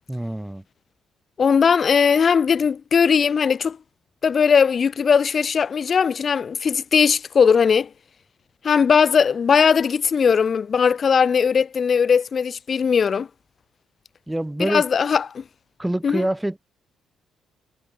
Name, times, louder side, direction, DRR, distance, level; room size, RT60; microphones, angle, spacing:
voice 1, 0.1-0.6 14.3-14.8 15.8-16.7, right 1 dB, 10° right, 5.5 m, -25 dB
voice 2, 1.4-3.8 4.2-7.9 8.6-13.3 14.6-15.4 16.0-16.3, left 6 dB, 45° left, 1.6 m, -19 dB
cardioid pair, 90°, 0 cm